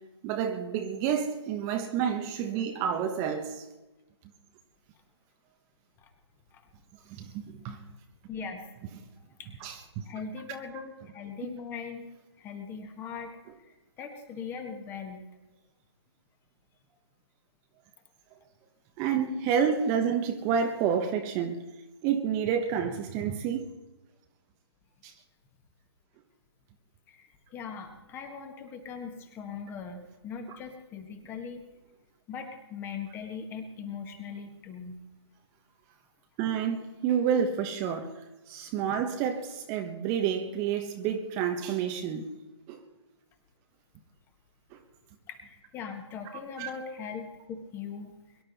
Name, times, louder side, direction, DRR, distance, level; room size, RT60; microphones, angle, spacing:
voice 1, 0.2-3.7 7.1-7.8 9.6-10.0 19.0-21.6 22.0-23.7 25.0-25.1 36.4-38.1 38.5-42.3 42.7-42.8 44.7-44.8 46.6-46.7, right 7 dB, 20° right, 1.1 m, -29 dB
voice 2, 8.3-8.7 9.4-9.8 10.0-12.1 12.4-15.3 27.1-31.6 32.3-35.0 45.3-48.1, left 6 dB, 15° left, 1.6 m, -40 dB
23.5 x 11.5 x 4.2 m
figure-of-eight pair, 140°, 15 cm